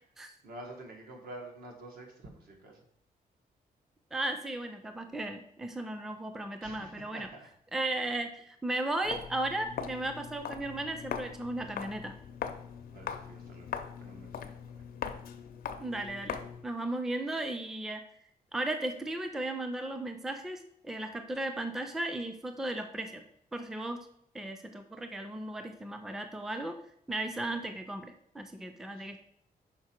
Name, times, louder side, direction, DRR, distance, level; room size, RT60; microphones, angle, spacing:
voice 1, 0.4-2.9 6.6-7.5 7.9-8.1 12.9-14.8 28.9-29.1, right 2 dB, 75° right, 1 dB, 1.4 m, -49 dB
voice 2, 4.1-7.3 7.7-12.1 15.8-16.4 16.6-18.0 18.5-23.2 23.5-24.0 24.3-26.8 27.1-29.2, right 1 dB, 5° right, 7 dB, 0.4 m, -35 dB
Walk footsteps, 9.0-16.7, left 8 dB, 80° left, 0.5 m, -41 dB
5.8 x 4.4 x 4.4 m, 0.72 s
wide cardioid pair, 165°, 15 cm